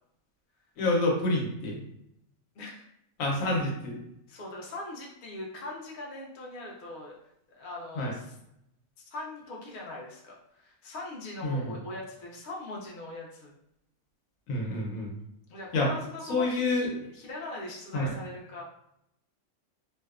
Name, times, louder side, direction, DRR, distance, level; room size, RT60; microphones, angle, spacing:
voice 1, 0.8-1.8 3.2-4.0 7.9-8.1 11.4-11.8 14.5-15.1 15.7-15.9 16.3-17.0 17.9-18.1, left 2 dB, 80° left, -1 dB, 1.1 m, -28 dB
voice 2, 2.6-2.9 4.3-7.1 7.5-8.4 9.0-13.5 15.5-18.6, left 2 dB, 55° left, -2 dB, 0.6 m, -41 dB
2.6 x 2.1 x 2.3 m, 0.78 s
omnidirectional pair, 1.4 m